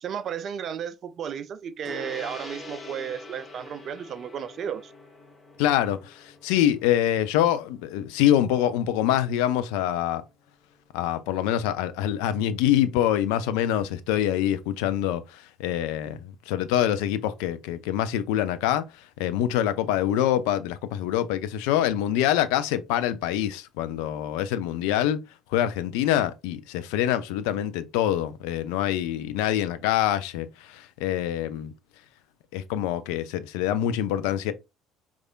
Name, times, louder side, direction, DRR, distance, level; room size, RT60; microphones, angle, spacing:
voice 1, 0.0-4.9, right 8 dB, 45° right, 0.3 m, -34 dB
Gong, 1.8-11.6, left 2 dB, 25° left, 0.8 m, -46 dB
voice 2, 5.6-10.2 10.9-18.8 19.2-25.2 25.5-31.7 32.5-34.5, left 11 dB, 60° left, 0.3 m, -25 dB
4.7 x 2.4 x 2.3 m
figure-of-eight pair, 55°, 0 cm